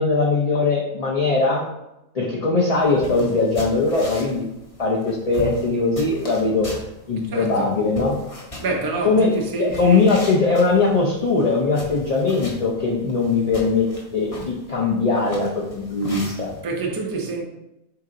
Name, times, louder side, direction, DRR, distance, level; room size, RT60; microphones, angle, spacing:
voice 1, 0.0-1.7 2.1-4.4 4.8-6.7 7.1-8.2 9.0-9.3 9.6-13.9 14.1-16.5, left 3 dB, 45° left, 0.5 m, -20 dB
sound 1, 2.7-16.6, left 1 dB, 30° left, 0.9 m, -39 dB
voice 2, 7.2-7.7 8.6-10.0 16.6-17.4, right 4 dB, 30° right, 0.4 m, -26 dB
4.5 x 2.9 x 3.7 m
omnidirectional pair, 1.4 m